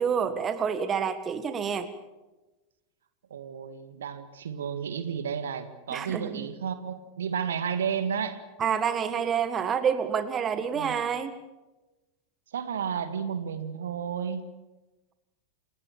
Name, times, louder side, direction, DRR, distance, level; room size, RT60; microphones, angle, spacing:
voice 1, 0.0-1.9 5.9-6.5 8.6-11.3, right 7 dB, 25° right, 10 dB, 1.8 m, -28 dB
voice 2, 3.3-8.4 10.8-11.0 12.5-14.5, right 7 dB, 65° right, 10 dB, 1.9 m, -32 dB
28.5 x 18.0 x 7.2 m, 1.1 s
figure-of-eight pair, 90°, 0 cm